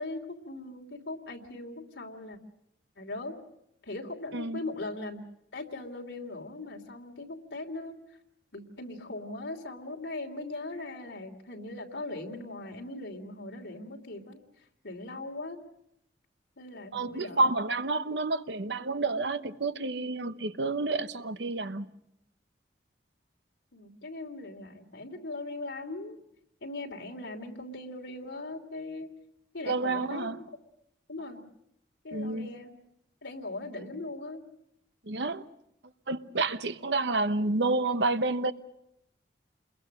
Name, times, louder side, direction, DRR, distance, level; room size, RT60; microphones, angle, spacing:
voice 1, 0.0-2.4 3.0-3.3 3.8-5.2 5.5-8.0 8.5-14.4 14.8-15.6 16.6-17.6 23.7-26.2 26.6-29.1 29.5-30.5 31.1-31.4 32.0-32.7 33.2-34.4, left 2 dB, 85° left, 2.9 m, -39 dB
voice 2, 16.9-21.9 29.7-30.4 32.1-32.5 35.1-35.4 36.1-38.5, right 3 dB, 75° right, 1.0 m, -29 dB
28.0 x 22.0 x 6.6 m
head